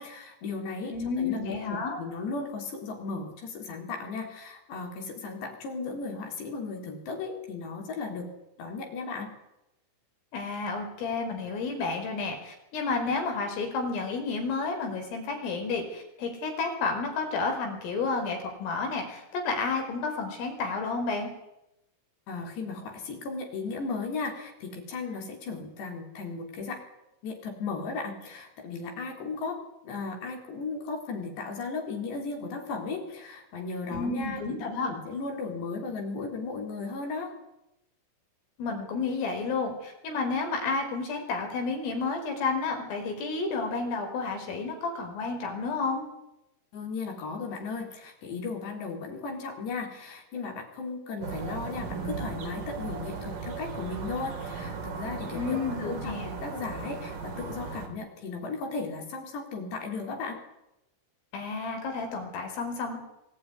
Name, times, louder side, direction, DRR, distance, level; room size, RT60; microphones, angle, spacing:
voice 1, 0.0-8.3 8.6-9.3 22.3-26.8 27.2-37.3 46.7-60.4, left 4 dB, 55° left, 2 dB, 5.7 m, -36 dB
voice 2, 0.9-2.0 10.3-21.3 33.9-34.9 38.6-46.1 55.3-56.3 61.3-63.0, left 4 dB, 75° left, 3 dB, 7.5 m, -31 dB
sound 1, 51.2-57.9, right 4 dB, 45° right, 4.0 m, -37 dB
24.0 x 17.0 x 9.9 m, 0.87 s
omnidirectional pair, 6.0 m